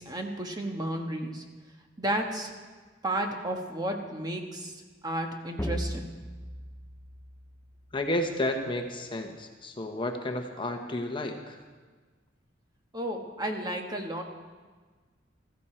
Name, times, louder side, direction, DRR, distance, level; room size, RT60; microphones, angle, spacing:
voice 1, 0.0-1.4 2.0-2.5 3.0-4.8 5.0-6.1 12.9-14.2, right 1 dB, 20° right, 3 dB, 1.3 m, -32 dB
sound 1, 5.6-8.2, equal, 10° left, 0.6 m, -37 dB
voice 2, 7.9-11.6, left 1 dB, 25° left, 4 dB, 1.0 m, -31 dB
15.0 x 14.0 x 4.4 m, 1.4 s
head